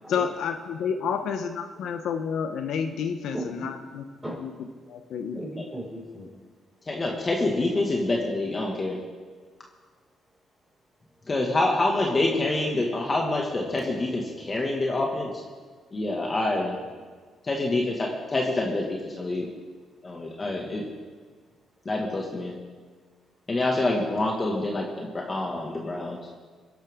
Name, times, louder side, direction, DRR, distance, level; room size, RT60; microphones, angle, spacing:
voice 1, 0.1-3.4 3.6-4.0 4.4-4.5 4.9-5.4, left 7 dB, 75° left, 6 dB, 1.0 m, -29 dB
voice 2, 3.3-3.9 4.2-4.6 5.3-6.3 7.7-7.9 14.6-14.7 17.0-17.1 25.9-26.4, right 1 dB, 10° right, -3 dB, 5.6 m, -39 dB
voice 3, 6.9-9.0 11.3-15.3 15.9-16.8 17.4-19.5 20.0-20.8 21.9-22.6 23.5-26.2, left 2 dB, 30° left, -1 dB, 2.0 m, -26 dB
23.0 x 11.5 x 3.8 m, 1.5 s
cardioid pair, 90°, 0 cm